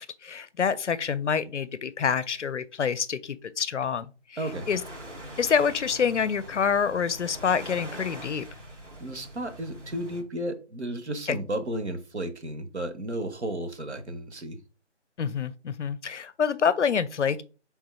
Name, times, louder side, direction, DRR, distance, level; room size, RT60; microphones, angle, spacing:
voice 1, 0.0-4.8 5.4-8.4 11.3-11.4 15.2-17.4, left 6 dB, 75° left, 0.5 m, -27 dB
voice 2, 4.4-4.7 9.0-14.6, right 1 dB, 65° right, 0.9 m, -33 dB
sound 1, 4.4-10.2, right 1 dB, 90° right, 1.7 m, -43 dB
3.6 x 2.7 x 4.2 m
figure-of-eight pair, 175°, 36 cm